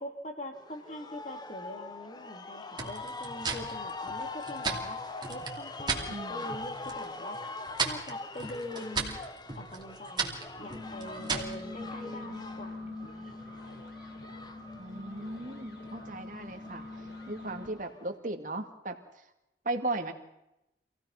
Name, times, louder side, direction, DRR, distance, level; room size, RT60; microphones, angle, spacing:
voice 1, 0.0-5.0 5.3-7.4 7.8-9.2 9.5-13.4, left 1 dB, 40° left, 4 dB, 2.9 m, -43 dB
sound 1, 0.5-18.1, left 3 dB, 25° left, 1.1 m, -43 dB
sound 2, 2.8-6.1 6.5-7.0 7.3-11.6, right 5 dB, 25° right, 2.7 m, -35 dB
voice 2, 6.1-6.5 14.8-16.8 17.3-19.0 19.6-20.1, right 2 dB, 45° right, 5 dB, 2.2 m, -36 dB
sound 3, 10.5-17.7, left 2 dB, 60° left, 5.0 m, -43 dB
27.0 x 17.0 x 5.9 m, 0.87 s
head